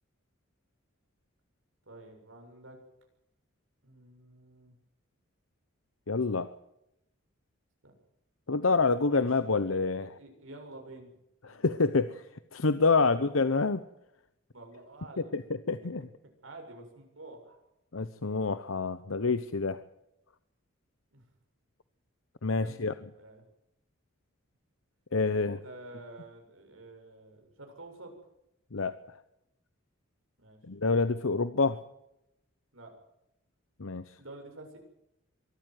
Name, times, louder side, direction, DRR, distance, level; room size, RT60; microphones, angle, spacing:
voice 1, 1.9-2.8 3.8-4.7 7.8-7.9 9.1-11.1 11.4-12.0 13.0-13.3 14.5-15.3 15.8-15.9 16.4-17.6 21.1-21.3 22.5-22.8 23.1-23.4 25.3-28.2 30.4-30.6 32.7-32.9 34.2-34.8, right 2 dB, 80° right, 3 dB, 7.3 m, -49 dB
voice 2, 6.1-6.5 8.5-10.1 11.4-12.3 12.5-13.8 15.2-15.4 15.7-16.1 17.9-19.8 22.4-22.9 25.1-25.6 28.7-29.2 30.6-31.8 33.8-34.1, left 4 dB, 85° left, 12 dB, 0.9 m, -27 dB
23.5 x 14.0 x 9.3 m, 0.83 s
head